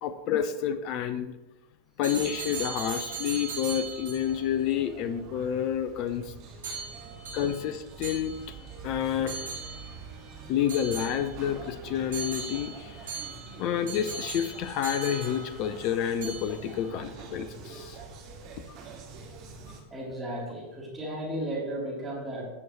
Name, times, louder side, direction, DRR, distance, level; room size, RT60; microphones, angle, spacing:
voice 1, 0.0-1.3 2.0-6.3 7.3-8.4 8.8-9.6 10.5-13.0 13.6-18.0, left 9 dB, 40° left, 13 dB, 0.6 m, -29 dB
sound 1, 2.0-4.4 6.6-8.7 9.3-10.0 10.7-11.6 12.1-15.9 16.2-16.8, right 4 dB, 65° right, 3.4 m, -39 dB
sound 2, 2.2-19.8, right 4 dB, 40° right, 1.9 m, -45 dB
voice 2, 19.9-22.5, right 1 dB, 10° right, -8 dB, 3.7 m, -34 dB
17.0 x 6.2 x 3.2 m, 1.1 s
figure-of-eight pair, 90°, 0 cm